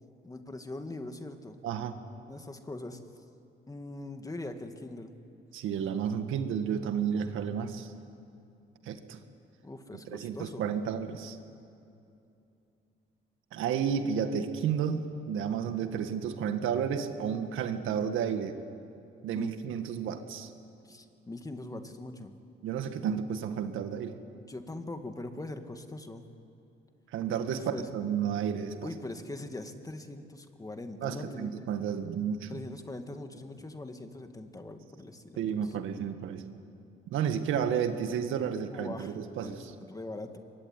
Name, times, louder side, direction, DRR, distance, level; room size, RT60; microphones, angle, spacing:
voice 1, 0.2-1.6 2.3-3.2 3.7-5.1 9.6-10.6 19.3-19.5 20.8-22.3 24.5-26.2 27.5-27.9 28.8-31.7 32.5-35.7 38.6-40.4, left 2 dB, 15° left, 6 dB, 2.2 m, -42 dB
voice 2, 1.6-2.0 5.5-7.9 8.9-9.2 10.1-11.4 13.5-18.6 19.2-20.5 22.6-24.1 27.1-28.9 31.0-32.5 35.4-36.6 37.1-39.7, right 7 dB, 85° right, 8 dB, 1.8 m, -32 dB
24.5 x 23.0 x 9.8 m, 2.7 s
cardioid pair, 90°, 20 cm